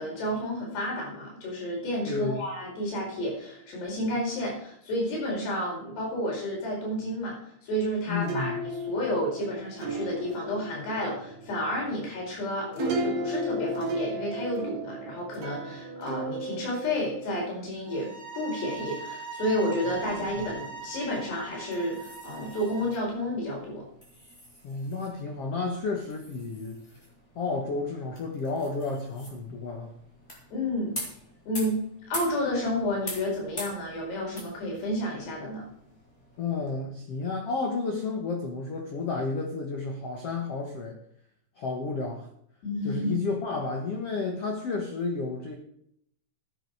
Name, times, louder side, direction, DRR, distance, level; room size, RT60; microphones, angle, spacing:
voice 1, 0.0-23.9 30.5-30.9 31.5-31.8 32.1-35.7 42.6-43.2, left 1 dB, 65° left, -1 dB, 6.8 m, -31 dB
voice 2, 2.1-2.4 8.1-8.6 24.6-26.8 27.3-29.9 36.4-41.0 41.6-42.3 42.8-45.5, left 4 dB, 90° left, 2 dB, 1.3 m, -31 dB
sound 1, 8.2-17.3, right 1 dB, 50° right, 4.4 m, -35 dB
sound 2, 17.8-23.0, right 5 dB, 30° right, 1.5 m, -41 dB
sound 3, 19.9-36.7, left 1 dB, 15° left, 3.8 m, -45 dB
13.0 x 10.0 x 4.8 m, 0.69 s
omnidirectional pair, 5.2 m